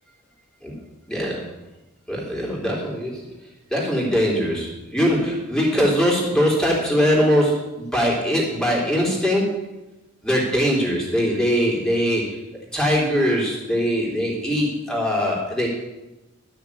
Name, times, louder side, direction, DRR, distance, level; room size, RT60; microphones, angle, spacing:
voice 1, 1.1-1.5 2.1-3.3 3.7-9.7 10.2-12.4 12.7-15.7, equal, 5° left, -3 dB, 3.5 m, -21 dB
13.0 x 6.6 x 8.4 m, 1.0 s
head